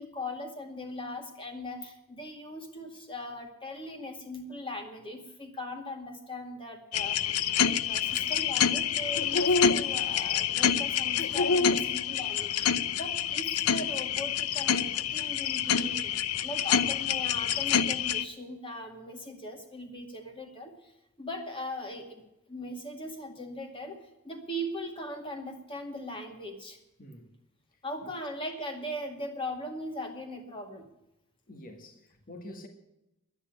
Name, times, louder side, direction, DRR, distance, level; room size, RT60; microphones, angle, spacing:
voice 1, 0.0-16.2 16.4-20.9 21.2-22.2 22.5-26.8 27.8-30.9, left 1 dB, 25° left, 2.2 m, -39 dB
sound 1, 6.9-18.2, left 7 dB, 85° left, 0.6 m, -27 dB
voice 2, 27.0-27.3 28.0-28.1 31.5-32.7, left 1 dB, 40° left, 1.7 m, -47 dB
11.5 x 9.8 x 9.4 m
head